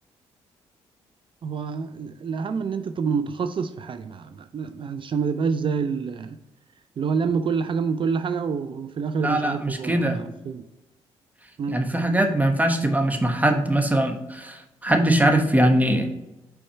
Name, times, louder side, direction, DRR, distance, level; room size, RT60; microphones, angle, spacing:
voice 1, 1.4-6.4 7.0-10.6 11.6-11.8, right 5 dB, 45° right, 0.4 m, -27 dB
voice 2, 9.2-10.2 11.7-16.1, right 1 dB, 15° right, 1.1 m, -21 dB
5.7 x 4.1 x 4.4 m
supercardioid pair, 65°, 12 cm